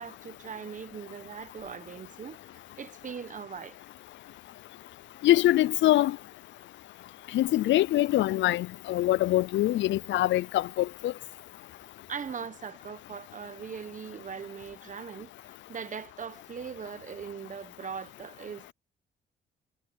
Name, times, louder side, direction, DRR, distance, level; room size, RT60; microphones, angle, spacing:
voice 1, 0.0-3.8 12.1-15.3 15.7-18.7, right 6 dB, 40° right, 1.2 m, -40 dB
voice 2, 5.2-6.2 7.3-11.1, left 15 dB, 70° left, 0.4 m, -24 dB
cardioid pair, 90°, 20 cm